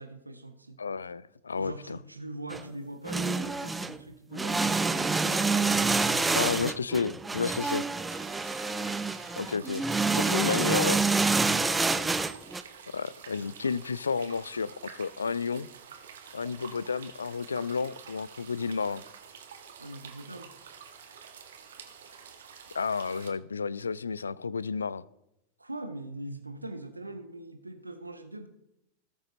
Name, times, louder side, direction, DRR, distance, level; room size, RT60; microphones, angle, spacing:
voice 1, 0.0-0.8 1.6-6.6 19.8-20.5 25.6-28.5, right 2 dB, 85° right, 0.8 m, -42 dB
voice 2, 0.8-2.0 6.3-7.8 9.4-9.8 10.1-11.0 12.9-15.7 16.3-19.0 22.7-25.0, left 5 dB, 75° left, 0.3 m, -31 dB
sound 1, 2.5-2.6 3.0-4.0 4.3-12.6, right 3 dB, 10° right, 0.5 m, -27 dB
sound 2, 8.1-23.3, right 7 dB, 60° right, 1.4 m, -49 dB
18.0 x 6.7 x 3.1 m
figure-of-eight pair, 90°, 0 cm